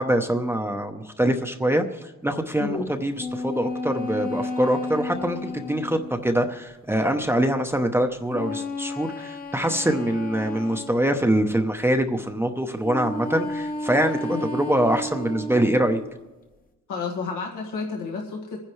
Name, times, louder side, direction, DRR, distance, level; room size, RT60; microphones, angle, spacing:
voice 1, 0.0-16.0, right 1 dB, 10° right, 4 dB, 0.8 m, -24 dB
sound 1, 3.2-6.7 8.3-11.2 12.8-16.1, left 2 dB, 30° left, 1.1 m, -32 dB
voice 2, 16.9-18.6, left 4 dB, 80° left, -1 dB, 1.9 m, -31 dB
25.5 x 10.0 x 3.2 m, 1.1 s
cardioid pair, 90°, 30 cm